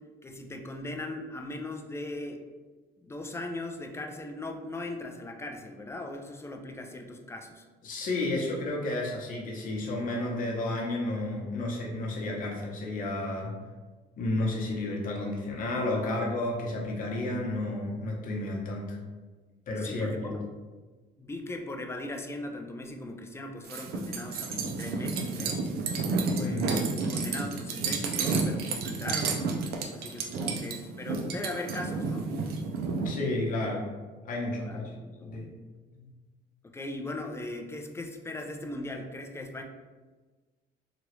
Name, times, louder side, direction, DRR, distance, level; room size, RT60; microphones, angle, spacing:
voice 1, 0.2-2.4 3.0-7.6 19.8-20.4 21.2-25.6 26.2-29.4 29.9-32.3 34.6-35.4 36.6-39.6, left 2 dB, 15° left, 3 dB, 0.3 m, -39 dB
voice 2, 7.8-13.5 14.2-19.0 19.7-20.3 26.4-26.6 33.0-33.8 34.2-34.9 35.2-35.5 35.9-36.1, left 2 dB, 55° left, -2 dB, 0.9 m, -31 dB
sound 1, 23.6-33.1, right 4 dB, 65° right, 0.5 m, -31 dB
2.9 x 2.4 x 3.1 m, 1.3 s
cardioid pair, 110°, 17 cm